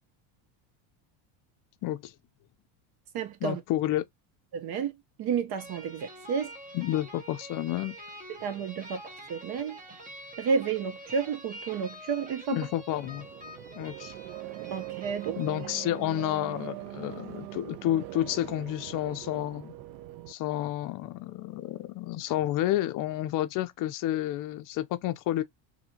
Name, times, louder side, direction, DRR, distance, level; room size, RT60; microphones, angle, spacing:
voice 1, 1.8-2.1 3.4-4.0 6.7-8.0 12.5-13.3 13.8-14.1 15.4-19.7 20.3-25.4, left 13 dB, 40° left, 0.5 m, -30 dB
voice 2, 3.1-3.6 4.5-6.5 8.3-9.8 10.4-12.7 14.7-15.4, right 6 dB, 50° right, 0.9 m, -31 dB
sound 1, 5.6-16.3, equal, 15° right, 0.9 m, -46 dB
sound 2, 12.9-20.3, right 17 dB, 85° right, 0.6 m, -42 dB
2.8 x 2.7 x 2.7 m
supercardioid pair, 130°, 50 cm